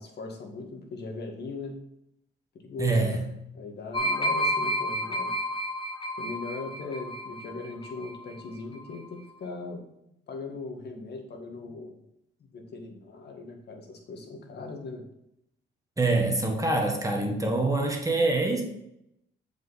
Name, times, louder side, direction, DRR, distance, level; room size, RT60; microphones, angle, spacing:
voice 1, 0.0-1.7 2.6-3.2 3.5-5.3 6.2-9.8 10.3-12.0 12.5-15.0, left 3 dB, 55° left, 3 dB, 1.7 m, -39 dB
voice 2, 2.8-3.2 16.0-18.6, right 2 dB, 15° right, 2 dB, 1.6 m, -25 dB
sound 1, 3.9-8.5 8.8-9.1, equal, 25° left, 0.9 m, -30 dB
7.5 x 5.2 x 4.2 m, 0.80 s
cardioid pair, 90°, 20 cm